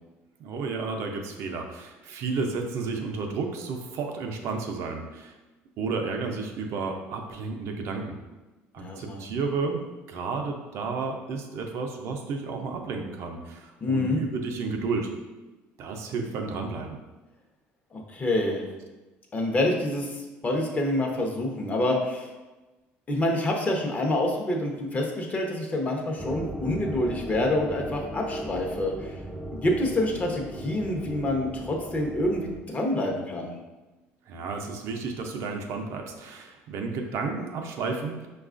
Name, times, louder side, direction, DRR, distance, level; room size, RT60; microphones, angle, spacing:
voice 1, 0.4-5.3 5.8-8.2 8.7-15.1 15.8-17.0 34.3-38.2, right 4 dB, 65° right, 3 dB, 0.5 m, -32 dB
voice 2, 8.8-9.2 13.8-14.2 17.9-18.6 19.3-22.3 23.1-29.2 29.5-33.5, left 1 dB, 30° left, 1 dB, 0.7 m, -27 dB
sound 1, 26.2-32.6, right 1 dB, 10° right, 0.4 m, -37 dB
4.7 x 2.3 x 2.4 m, 1.1 s
supercardioid pair, 95°, 5 cm